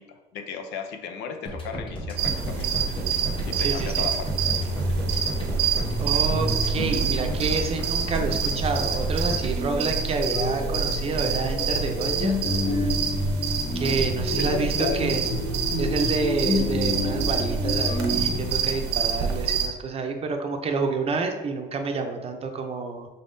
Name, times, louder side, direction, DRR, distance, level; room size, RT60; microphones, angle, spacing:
voice 1, 0.0-2.7 3.4-4.3 6.6-6.8 14.4-15.1, left 6 dB, 90° left, 6 dB, 0.5 m, -35 dB
sound 1, 1.5-9.5, left 1 dB, 30° left, 1.0 m, -33 dB
sound 2, 2.2-19.7, right 6 dB, 85° right, 0.6 m, -27 dB
voice 2, 3.6-4.0 6.0-12.4 13.7-15.2 15.8-23.1, right 4 dB, 35° right, 5 dB, 0.5 m, -28 dB
sound 3, 4.3-18.6, left 1 dB, 65° left, 1.1 m, -30 dB
4.0 x 3.4 x 2.6 m, 1.2 s
cardioid pair, 110°, 17 cm